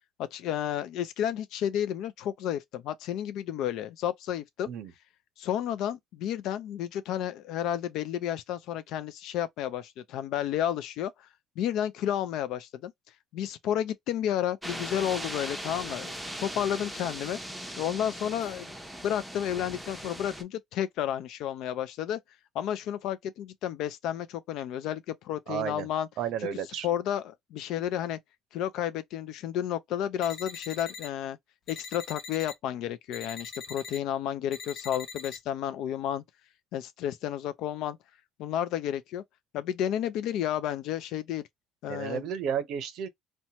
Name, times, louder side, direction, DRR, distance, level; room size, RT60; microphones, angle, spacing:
voice 1, 0.2-4.7 5.4-11.3 11.6-12.9 13.3-17.4 17.8-18.7 19.0-22.2 22.5-26.1 26.8-28.2 28.5-31.4 31.7-36.2 36.7-38.0 38.4-39.2 39.5-41.4 41.8-42.2, left 10 dB, 75° left, 0.3 m, -31 dB
sound 1, 14.6-20.4, equal, 5° right, 0.7 m, -39 dB
voice 2, 25.5-25.9 26.2-26.9 41.9-43.1, right 8 dB, 70° right, 0.5 m, -32 dB
sound 2, 30.2-31.1 31.7-32.5 33.1-34.0 34.5-35.4, left 5 dB, 55° left, 0.7 m, -42 dB
2.7 x 2.2 x 2.8 m
supercardioid pair, 70°, 0 cm